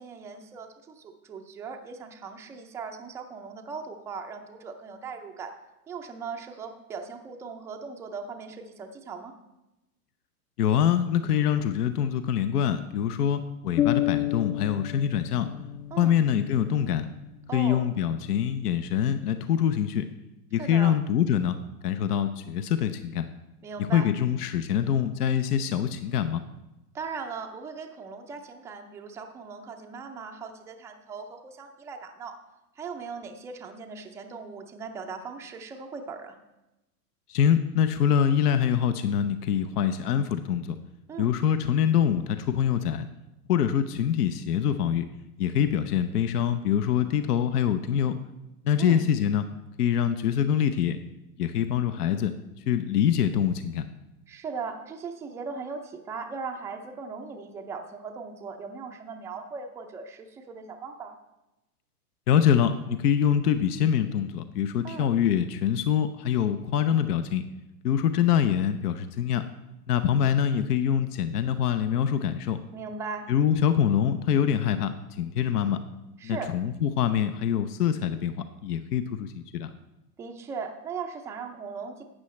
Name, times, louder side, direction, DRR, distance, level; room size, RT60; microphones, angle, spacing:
voice 1, 0.0-5.5 5.9-9.3 15.9-16.1 17.5-17.9 20.6-20.9 23.6-24.1 26.9-32.3 32.8-36.4 41.1-41.3 48.8-49.0 54.3-61.2 64.8-65.1 72.7-73.3 76.2-76.5 80.2-82.0, right 5 dB, 5° right, 3 dB, 0.4 m, -38 dB
voice 2, 10.6-15.5 16.0-17.1 17.5-20.1 20.5-21.6 21.8-23.3 23.9-26.4 37.3-40.8 41.2-43.0 43.5-45.0 45.4-48.2 48.6-49.4 49.8-51.0 51.4-52.3 52.7-53.9 62.3-67.4 67.8-69.5 69.9-72.6 73.3-75.8 76.2-79.7, left 9 dB, 75° left, 10 dB, 0.8 m, -25 dB
sound 1, 13.8-17.5, left 14 dB, 40° left, 0.6 m, -30 dB
12.5 x 8.6 x 3.2 m, 0.97 s
hypercardioid pair, 115°, 47 cm